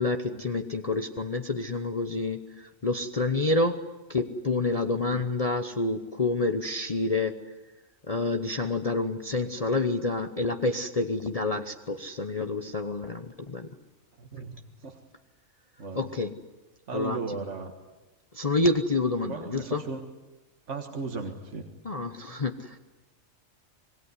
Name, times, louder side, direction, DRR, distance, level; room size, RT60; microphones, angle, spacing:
voice 1, 0.0-3.8 4.1-7.4 8.1-13.7 15.9-16.4 16.9-17.2 18.3-19.8 21.8-22.8, left 2 dB, 30° left, 6 dB, 1.0 m, -28 dB
voice 2, 14.2-14.6 14.8-15.0 15.8-16.1 16.9-17.7 19.3-20.0 20.7-21.7, right 4 dB, 65° right, 4 dB, 1.9 m, -36 dB
26.0 x 21.0 x 9.8 m, 1.1 s
omnidirectional pair, 1.4 m